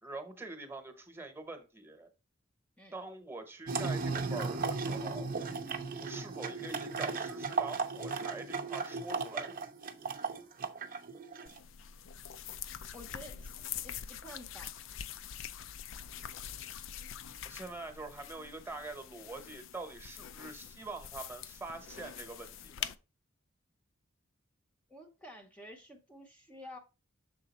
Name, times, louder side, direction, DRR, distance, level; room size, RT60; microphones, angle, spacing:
voice 1, 0.0-2.1 2.9-5.3 6.0-9.5 17.4-22.9, right 3 dB, 10° right, 1.0 m, -44 dB
sound 1, 3.7-11.6, right 4 dB, 45° right, 0.6 m, -36 dB
sound 2, 11.5-23.0, left 9 dB, 70° left, 0.4 m, -45 dB
voice 2, 12.9-13.5 13.8-14.7 24.9-26.8, left 1 dB, 5° left, 0.7 m, -50 dB
6.7 x 3.8 x 4.1 m
head